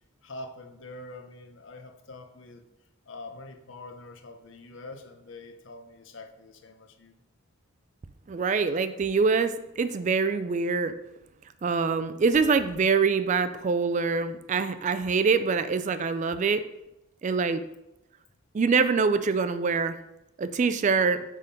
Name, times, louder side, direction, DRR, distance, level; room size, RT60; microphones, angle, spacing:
voice 1, 0.2-2.6 3.0-7.2, left 2 dB, 60° left, 5 dB, 0.8 m, -44 dB
voice 2, 8.3-11.0 11.6-16.7 17.2-17.6 18.5-20.0 20.4-21.2, right 5 dB, 35° right, 12 dB, 0.3 m, -24 dB
8.5 x 3.7 x 5.2 m, 0.91 s
head